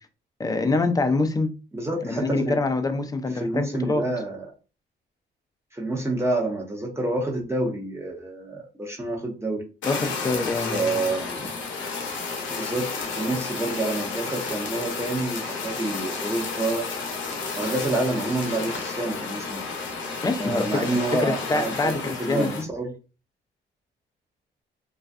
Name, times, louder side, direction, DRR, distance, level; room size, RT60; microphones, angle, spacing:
voice 1, 0.4-1.5 2.0-4.0 9.8-11.0 20.2-20.9 21.2-22.6, left 3 dB, 20° left, 7 dB, 0.4 m, -25 dB
voice 2, 1.7-2.6 3.4-4.5 5.7-9.6 10.7-11.5 12.5-16.8 17.6-19.6 20.4-22.9, right 2 dB, 15° right, -2 dB, 0.7 m, -28 dB
Fire, 9.8-22.6, left 4 dB, 70° left, 0.7 m, -32 dB
2.4 x 2.2 x 2.5 m, 0.33 s
cardioid pair, 90°, 20 cm